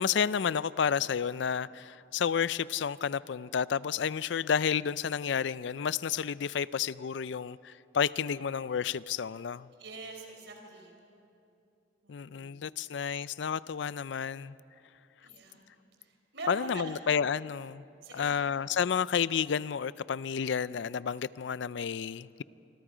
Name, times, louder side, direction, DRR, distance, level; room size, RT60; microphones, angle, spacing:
voice 1, 0.0-9.7 12.1-14.6 16.5-17.8 18.1-22.4, left 7 dB, 70° left, 18 dB, 0.4 m, -31 dB
voice 2, 9.8-10.9 12.0-12.6 15.2-15.6 16.0-17.0 18.0-18.5, right 2 dB, 70° right, 3 dB, 4.2 m, -44 dB
27.0 x 25.0 x 5.0 m, 2.8 s
head